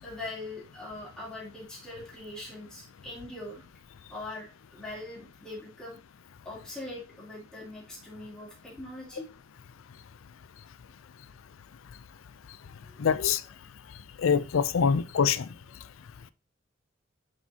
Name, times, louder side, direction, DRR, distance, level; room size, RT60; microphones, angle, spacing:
voice 1, 0.0-3.6 4.1-6.0 6.4-9.3 12.8-13.1, left 2 dB, 5° left, 2.7 m, -42 dB
voice 2, 13.0-13.4 14.2-15.5, left 6 dB, 80° left, 0.4 m, -24 dB
10.5 x 4.3 x 2.8 m
head